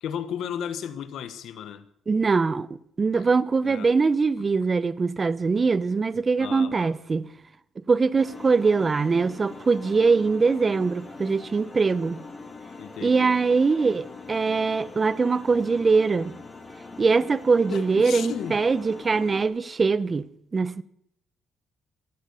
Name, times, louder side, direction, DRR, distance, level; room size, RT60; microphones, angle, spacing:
voice 1, 0.0-1.9 3.1-3.3 3.6-3.9 4.4-4.5 6.4-6.9 12.8-13.4 17.7-18.6, left 9 dB, 75° left, 1.3 m, -34 dB
voice 2, 2.1-2.7 3.0-7.3 7.9-12.2 13.0-16.4 17.0-20.3 20.5-20.8, right 4 dB, 35° right, 0.7 m, -22 dB
sound 1, 8.2-19.5, left 3 dB, 25° left, 2.8 m, -42 dB
14.0 x 11.5 x 7.0 m
cardioid pair, 90°, 0 cm